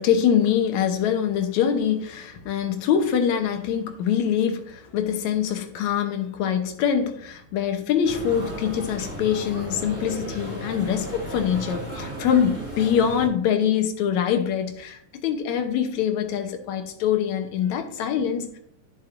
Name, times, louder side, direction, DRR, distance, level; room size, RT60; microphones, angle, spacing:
voice 1, 0.0-18.6, left 8 dB, 70° left, 6 dB, 2.2 m, -24 dB
sound 1, 8.0-13.3, right 1 dB, 5° right, 3.4 m, -35 dB
12.0 x 7.1 x 2.6 m, 0.69 s
omnidirectional pair, 3.5 m